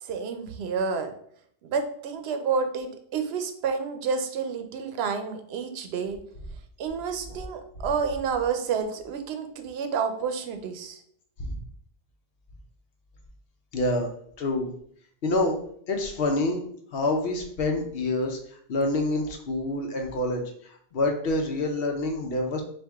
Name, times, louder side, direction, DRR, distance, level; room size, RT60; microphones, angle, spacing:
voice 1, 0.0-1.1 1.6-6.2 6.8-11.0, right 5 dB, 80° right, 7 dB, 0.8 m, -29 dB
voice 2, 13.7-14.1 14.4-14.7 15.2-15.6 15.9-16.6 16.9-18.4 18.7-22.6, left 2 dB, 70° left, 3 dB, 0.9 m, -27 dB
4.6 x 2.5 x 3.5 m, 0.64 s
omnidirectional pair, 1.1 m